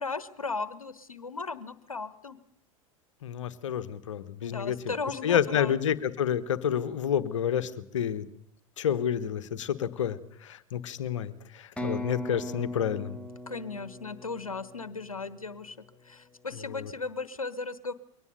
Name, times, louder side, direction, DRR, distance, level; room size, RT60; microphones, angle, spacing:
voice 1, 0.0-2.4 4.4-5.9 13.5-15.8 16.0-17.9, left 4 dB, 80° left, 16 dB, 1.3 m, -36 dB
voice 2, 3.2-4.9 5.2-8.2 8.8-13.2 16.7-16.9, left 9 dB, 60° left, 13 dB, 1.4 m, -29 dB
sound 1, 11.8-15.5, equal, 5° left, 1.8 m, -39 dB
23.0 x 18.5 x 6.9 m, 0.68 s
figure-of-eight pair, 90°, 18 cm